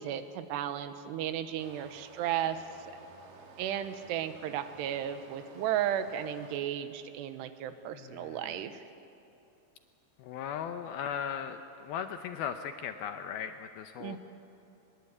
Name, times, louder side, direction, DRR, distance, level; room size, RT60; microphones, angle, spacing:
voice 1, 0.0-2.6 3.6-8.8 14.0-14.2, right 10 dB, 80° right, 10 dB, 2.9 m, -34 dB
Stream, 1.6-6.6, right 4 dB, 60° right, 2.9 m, -54 dB
voice 2, 8.0-8.6 10.2-14.2, left 8 dB, 80° left, 7 dB, 2.2 m, -38 dB
23.5 x 21.5 x 8.3 m, 2.8 s
omnidirectional pair, 5.1 m